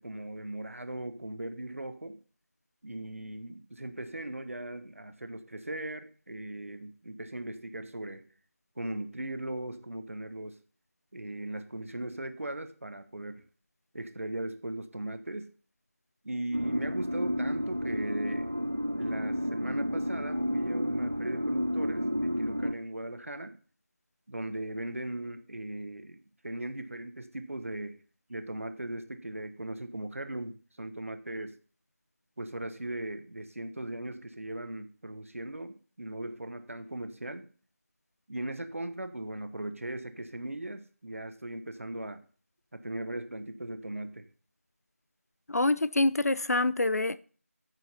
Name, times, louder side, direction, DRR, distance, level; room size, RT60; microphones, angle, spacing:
voice 1, 0.0-2.2 2.8-8.2 8.8-10.6 11.1-13.4 13.9-15.5 16.2-18.5 19.0-23.6 24.3-28.0 28.3-31.6 32.4-37.5 38.3-42.2 42.7-44.3, right 1 dB, 60° right, 1.1 m, -38 dB
sound 1, 16.5-22.8, equal, 30° right, 0.3 m, -31 dB
voice 2, 45.5-47.2, left 2 dB, 80° left, 0.6 m, -26 dB
9.3 x 6.3 x 4.3 m
figure-of-eight pair, 175°, 8 cm